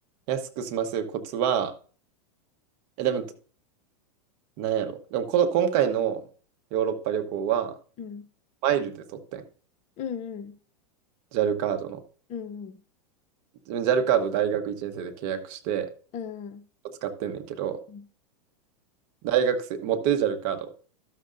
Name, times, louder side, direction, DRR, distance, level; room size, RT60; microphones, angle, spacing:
voice 1, 0.3-1.7 3.0-3.2 4.6-6.2 6.7-7.7 8.6-9.4 11.3-12.0 13.7-15.9 17.0-17.8 19.2-20.7, right 9 dB, 50° right, 1.1 m, -26 dB
voice 2, 10.0-10.6 12.3-12.8 16.1-16.6 17.9-18.0, left 7 dB, 35° left, 0.7 m, -36 dB
13.0 x 6.7 x 2.6 m
hypercardioid pair, 125°, 20 cm